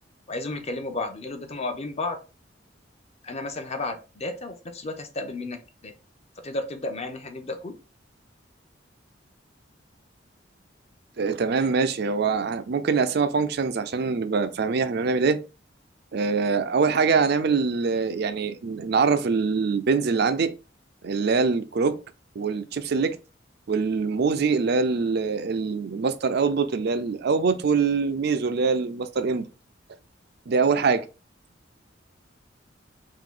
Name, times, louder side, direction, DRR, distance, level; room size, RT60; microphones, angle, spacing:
voice 1, 0.3-2.2 3.2-5.9 6.4-7.8, left 2 dB, 35° left, 0.7 m, -33 dB
voice 2, 11.2-15.4 16.1-20.5 21.0-22.0 22.4-23.2 23.7-29.5 30.5-31.1, right 5 dB, 60° right, 0.5 m, -24 dB
3.8 x 2.7 x 3.7 m
head